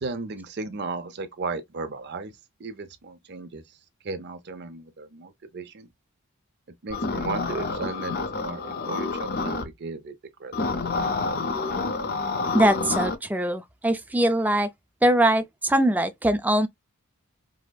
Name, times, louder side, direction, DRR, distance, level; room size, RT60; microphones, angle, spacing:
voice 1, 0.0-2.3 2.6-3.6 4.0-5.9 6.8-10.1 10.4-10.5, right 3 dB, 50° right, 0.7 m, -35 dB
sound 1, 6.9-9.7 10.5-13.2, left 3 dB, 45° left, 0.6 m, -28 dB
voice 2, 12.5-14.7 15.0-16.7, right 1 dB, 5° right, 0.4 m, -22 dB
4.9 x 2.0 x 2.3 m
head